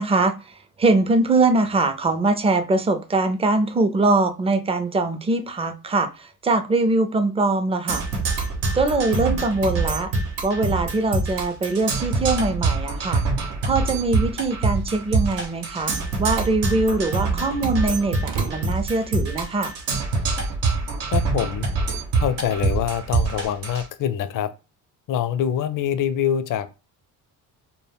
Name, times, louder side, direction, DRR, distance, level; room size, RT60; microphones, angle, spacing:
voice 1, 0.0-8.0 8.7-10.1 10.4-13.2 13.6-15.9 16.2-19.7, right 2 dB, 15° right, 0.4 m, -22 dB
Percussion, 7.9-23.9, right 3 dB, 85° right, 0.8 m, -25 dB
sound 1, 15.3-15.6 15.9-16.0 16.2-16.3 16.8-19.8, right 4 dB, 50° right, 0.7 m, -35 dB
voice 2, 21.1-21.7 22.2-24.5 25.1-26.7, left 9 dB, 55° left, 0.5 m, -24 dB
2.1 x 2.1 x 3.4 m
supercardioid pair, 75°, 40 cm